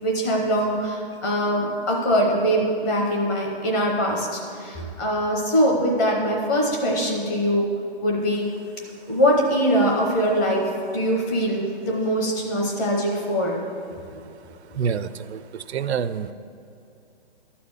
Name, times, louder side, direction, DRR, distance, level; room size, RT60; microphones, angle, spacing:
voice 1, 0.0-7.6 8.0-8.5 9.1-10.6 10.9-13.6, equal, 15° left, -1 dB, 0.9 m, -22 dB
voice 2, 14.7-16.3, right 7 dB, 85° right, 13 dB, 0.5 m, -27 dB
12.0 x 4.3 x 7.2 m, 2.7 s
hypercardioid pair, 170°, 32 cm